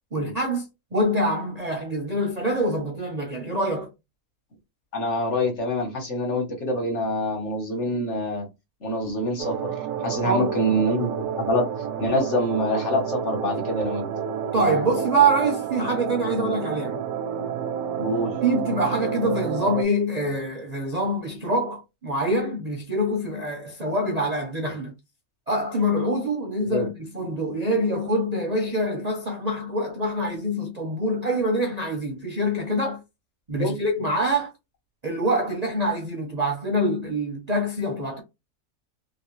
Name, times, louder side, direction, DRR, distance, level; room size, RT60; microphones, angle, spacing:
voice 1, 0.1-0.7 0.9-3.9 10.2-10.6 14.5-17.0 18.4-24.9 25.5-33.0 33.5-34.5 35.0-38.2, right 1 dB, 40° right, 0.6 m, -25 dB
voice 2, 4.9-8.5 8.8-9.7 10.0-11.7 12.0-14.1 17.9-18.4 26.7-26.9 33.5-33.8, left 1 dB, 55° left, 1.4 m, -25 dB
sound 1, 9.4-19.8, right 8 dB, 80° right, 1.1 m, -30 dB
3.0 x 3.0 x 3.1 m
omnidirectional pair, 1.6 m